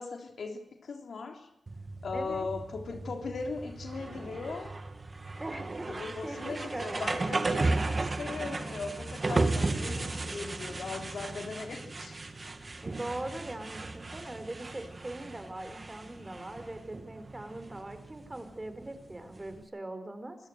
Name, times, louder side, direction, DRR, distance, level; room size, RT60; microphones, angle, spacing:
voice 1, 0.0-1.5 2.0-4.7 5.9-12.2, left 4 dB, 70° left, 4 dB, 3.4 m, -39 dB
sound 1, 1.7-19.6, right 3 dB, 40° right, 2.5 m, -35 dB
voice 2, 2.1-2.5 5.4-6.0 6.2-7.2 12.8-20.4, right 1 dB, 25° right, 9 dB, 4.4 m, -41 dB
26.0 x 14.0 x 8.0 m, 0.85 s
cardioid pair, 50°, 0 cm